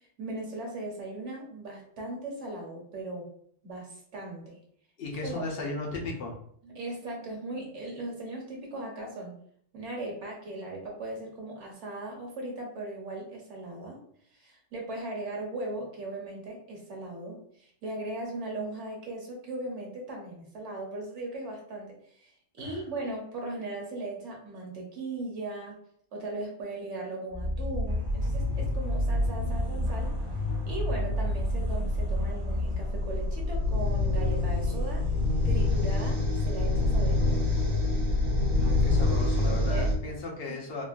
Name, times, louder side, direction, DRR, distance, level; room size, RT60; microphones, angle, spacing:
voice 1, 0.2-3.3 3.6-4.6 5.2-5.4 6.6-9.3 9.7-14.0 14.3-25.8 26.1-30.1 30.7-35.0 35.4-37.5 39.5-39.9, right 2 dB, 65° right, -1 dB, 1.2 m, -38 dB
voice 2, 5.0-6.4 22.6-22.8 38.5-40.8, left 2 dB, 55° left, -1 dB, 0.9 m, -36 dB
sound 1, 27.3-39.9, left 2 dB, 35° right, 0.5 m, -27 dB
3.7 x 2.0 x 2.4 m, 0.65 s
omnidirectional pair, 1.3 m